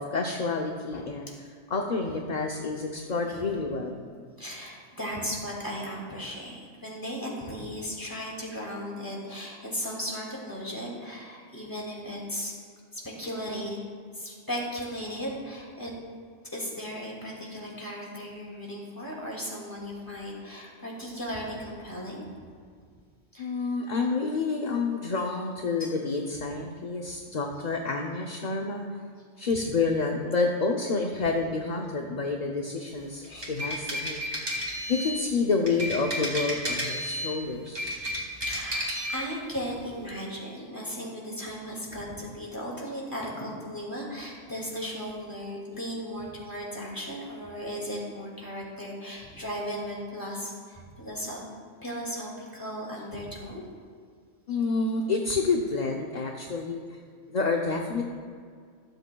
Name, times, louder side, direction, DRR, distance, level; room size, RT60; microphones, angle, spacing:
voice 1, 0.0-1.3 1.7-4.2 23.4-28.8 29.4-34.2 34.9-37.9 54.5-56.8 57.3-58.0, left 4 dB, 45° left, 1 dB, 0.7 m, -29 dB
voice 2, 4.4-12.5 12.9-13.8 14.1-15.9 16.5-22.2 23.3-23.5 31.2-31.3 33.2-33.6 38.4-51.4 51.8-53.6 54.5-54.6, equal, 15° left, -3 dB, 2.2 m, -36 dB
sound 1, 33.2-35.2 35.7-37.3 37.7-39.2, equal, 45° right, 2.8 m, -32 dB
23.0 x 8.0 x 2.3 m, 2.1 s
omnidirectional pair, 1.2 m